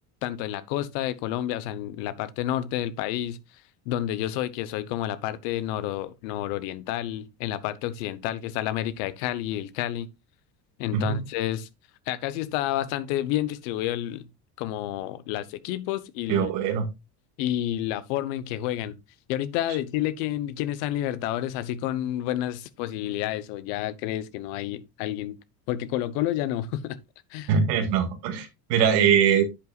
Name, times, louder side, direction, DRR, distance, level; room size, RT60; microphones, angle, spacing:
voice 1, 0.2-3.4 3.8-10.1 10.8-11.7 12.1-14.3 14.6-16.5 17.4-19.0 19.3-25.4 25.7-27.0 27.3-27.5, left 13 dB, 80° left, 1.1 m, -30 dB
voice 2, 16.3-16.9 27.5-29.4, right 7 dB, 85° right, 2.1 m, -22 dB
10.5 x 8.3 x 2.4 m
supercardioid pair, 85°, 48 cm